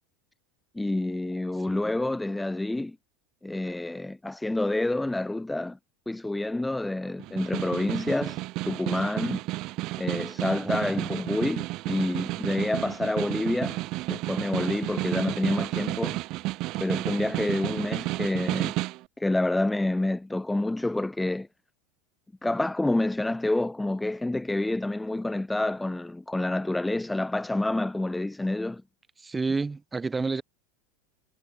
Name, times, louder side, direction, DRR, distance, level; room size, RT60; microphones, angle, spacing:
voice 1, 0.7-3.0 3.4-5.8 6.1-9.4 10.0-13.8 14.1-16.2 16.8-18.7 19.2-21.5 22.4-28.8, left 2 dB, 5° left, 1.0 m, -28 dB
Snare drum, 7.2-19.0, right 19 dB, 50° right, 1.8 m, -32 dB
voice 2, 10.7-11.0 29.2-30.4, right 4 dB, 15° right, 7.1 m, -30 dB
hypercardioid pair, 85°, 0 cm